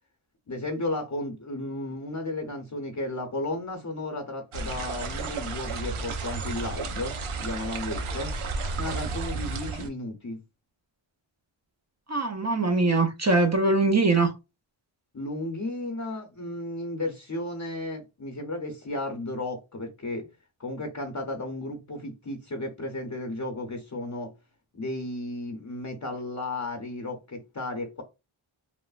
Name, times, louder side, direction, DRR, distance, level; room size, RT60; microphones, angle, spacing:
voice 1, 0.5-8.3 8.7-10.4 15.1-20.3 20.6-24.3 24.7-28.0, left 2 dB, 35° left, 0.6 m, -34 dB
sound 1, 4.5-9.9, right 3 dB, 80° right, 0.6 m, -32 dB
voice 2, 12.1-14.3, right 3 dB, 35° right, 0.5 m, -22 dB
3.1 x 2.0 x 2.3 m
wide cardioid pair, 40°, 49 cm